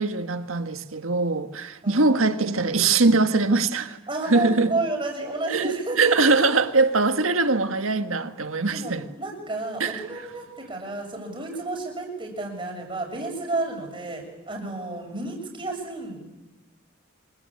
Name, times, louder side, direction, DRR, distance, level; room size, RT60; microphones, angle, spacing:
voice 1, 0.0-4.0 4.3-4.7 5.5-9.0 9.8-10.0, right 3 dB, 90° right, 1.6 m, -22 dB
voice 2, 1.8-2.2 4.1-6.4 8.7-16.2, right 2 dB, 25° right, 6.7 m, -31 dB
27.0 x 22.5 x 8.5 m
head